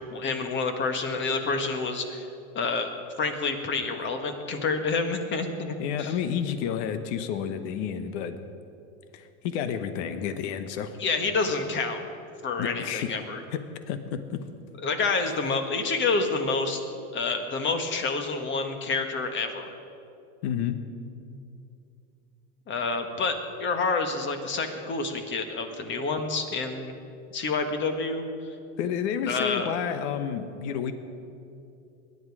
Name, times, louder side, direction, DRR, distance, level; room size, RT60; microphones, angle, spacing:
voice 1, 0.1-2.3 2.5-2.9 3.2-6.2 11.0-12.0 12.4-13.4 14.8-16.8 17.1-19.7 22.7-26.9 27.3-28.5 29.3-29.7, left 4 dB, 30° left, 6 dB, 1.6 m, -28 dB
voice 2, 5.8-8.4 9.1-11.0 12.6-13.1 13.5-13.6 13.9-14.4 20.4-20.8 28.8-30.9, left 8 dB, 60° left, 10 dB, 1.2 m, -30 dB
21.5 x 11.0 x 4.9 m, 2.6 s
supercardioid pair, 125°, 37 cm